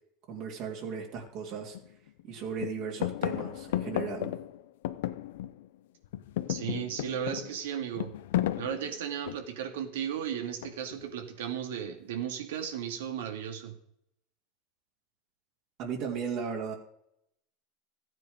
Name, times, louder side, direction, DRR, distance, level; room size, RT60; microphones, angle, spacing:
voice 1, 0.3-1.8 2.3-4.3 15.8-16.7, right 6 dB, 55° right, 0 dB, 2.6 m, -36 dB
sound 1, 1.2-1.3 1.7-2.3 2.6-5.8 6.0-9.7 10.6-11.1, left 13 dB, 80° left, 0.7 m, -34 dB
voice 2, 6.5-8.1 8.6-13.7, right 9 dB, 85° right, 6 dB, 2.2 m, -35 dB
14.0 x 9.2 x 5.1 m, 0.75 s
supercardioid pair, 130°, 0 cm